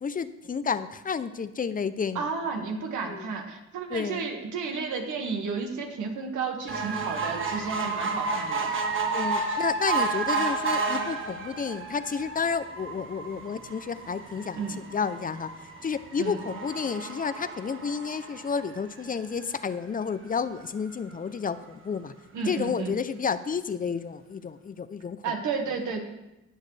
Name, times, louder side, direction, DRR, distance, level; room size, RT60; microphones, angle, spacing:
voice 1, 0.0-2.3 3.1-3.3 3.9-4.3 9.1-14.7 14.9-15.5 15.8-22.1 22.5-25.2, left 6 dB, 30° left, 14 dB, 0.5 m, -31 dB
voice 2, 2.2-8.7 14.6-14.8 16.2-16.4 22.3-22.9 25.2-26.0, right 5 dB, 75° right, 2 dB, 1.8 m, -32 dB
sound 1, 6.7-19.3 19.8-19.9 20.2-20.3 20.6-20.7, right 4 dB, 40° right, 1.5 m, -31 dB
19.0 x 6.4 x 3.3 m, 0.95 s
cardioid pair, 90°, 30 cm